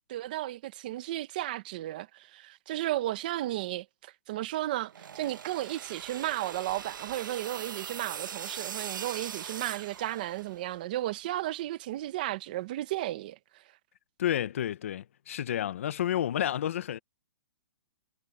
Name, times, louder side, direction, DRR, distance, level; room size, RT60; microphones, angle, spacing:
voice 1, 0.1-13.4, right 15 dB, 25° right, 0.7 m, -34 dB
sound 1, 4.8-10.7, right 8 dB, 75° right, 1.2 m, -41 dB
sound 2, 5.9-12.8, right 9 dB, 50° right, 3.9 m, -62 dB
voice 2, 14.2-17.0, left 11 dB, 40° left, 0.5 m, -30 dB
hypercardioid pair, 180°, 11 cm